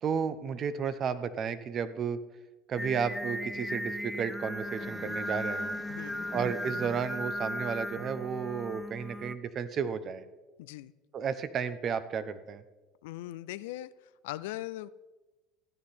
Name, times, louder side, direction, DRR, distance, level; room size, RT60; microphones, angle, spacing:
voice 1, 0.0-2.2 2.7-5.7 6.3-10.2 11.1-12.6, right 6 dB, 40° right, 13 dB, 1.0 m, -33 dB
Singing, 2.8-9.3, equal, ahead, 0.5 m, -37 dB
sound 1, 4.6-7.5, left 4 dB, 20° left, 1.1 m, -44 dB
voice 2, 5.9-6.3 10.6-10.9 13.0-13.9 14.2-14.9, left 16 dB, 85° left, 15 dB, 0.4 m, -40 dB
15.5 x 9.6 x 4.3 m, 1.2 s
supercardioid pair, 100°, 0 cm